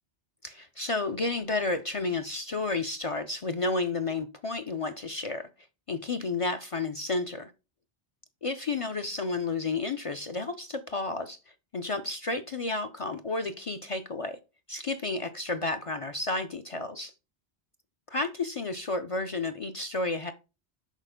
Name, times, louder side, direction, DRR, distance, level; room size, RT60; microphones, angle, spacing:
voice 1, 0.4-5.5 5.9-7.5 8.4-11.4 11.7-14.4 14.7-17.1 18.1-20.3, left 3 dB, 50° left, 0.4 m, -31 dB
6.5 x 4.1 x 5.1 m
omnidirectional pair, 1.1 m